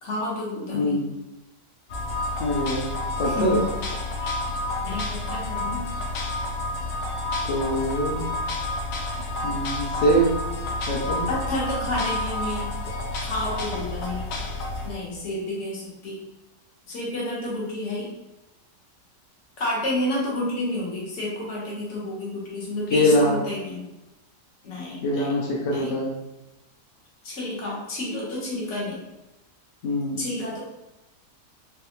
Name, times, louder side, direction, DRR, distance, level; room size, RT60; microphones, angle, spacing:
voice 1, 0.0-1.0 3.3-3.7 4.2-4.3 4.8-5.8 11.3-12.7 13.2-14.2 14.8-16.2 16.9-18.1 19.6-23.8 24.6-25.3 25.7-25.9 27.2-29.0 30.2-30.6, left 1 dB, 50° left, -5 dB, 1.0 m, -30 dB
sound 1, 1.9-14.9, left 2 dB, 85° left, 1.3 m, -30 dB
voice 2, 2.4-2.9 3.2-3.6 7.4-8.2 9.4-10.3 10.9-11.3 22.9-23.3 25.0-26.1 29.8-30.2, equal, 70° left, -3 dB, 0.6 m, -23 dB
3.3 x 2.3 x 2.8 m, 0.96 s
omnidirectional pair, 1.8 m